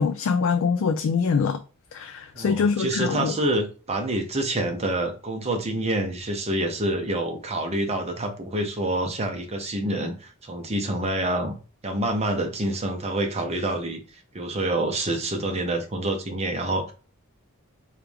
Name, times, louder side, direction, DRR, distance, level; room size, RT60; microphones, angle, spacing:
voice 1, 0.0-1.6 1.9-3.4, left 5 dB, 70° left, 0.3 m, -24 dB
voice 2, 2.3-11.6 11.8-14.0 14.3-16.9, right 1 dB, 30° right, 0.8 m, -27 dB
4.4 x 2.4 x 3.4 m
head